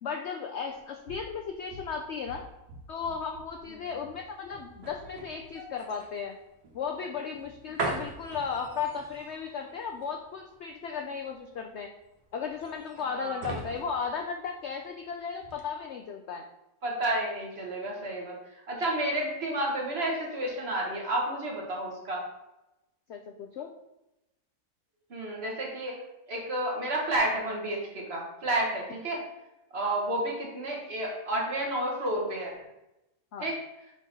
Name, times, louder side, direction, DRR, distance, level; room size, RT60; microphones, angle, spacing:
voice 1, 0.0-2.4 2.9-6.4 6.7-11.9 12.3-16.4 23.1-23.7 29.8-30.0 33.3-33.5, left 6 dB, 70° left, 3 dB, 0.6 m, -35 dB
sound 1, 0.7-15.0 15.4-15.6, right 3 dB, 85° right, 1.6 m, -42 dB
voice 2, 13.1-13.4 16.8-18.3 18.7-22.2 25.1-26.0 26.3-29.2 29.7-32.5 33.4-33.5, right 1 dB, 45° right, -2 dB, 1.4 m, -31 dB
6.4 x 3.8 x 4.0 m, 0.93 s
omnidirectional pair, 1.7 m